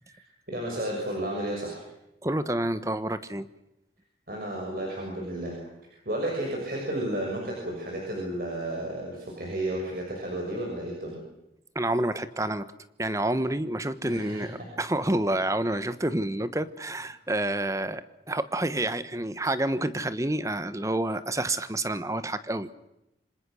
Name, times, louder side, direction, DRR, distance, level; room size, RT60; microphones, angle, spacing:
voice 1, 0.0-1.9 4.3-5.6 5.9-11.2 14.0-14.7, right 1 dB, 55° right, -1 dB, 6.6 m, -32 dB
voice 2, 2.2-3.5 11.7-12.6 13.0-22.7, right 1 dB, 20° right, 13 dB, 1.2 m, -28 dB
27.5 x 26.0 x 6.4 m, 0.89 s
head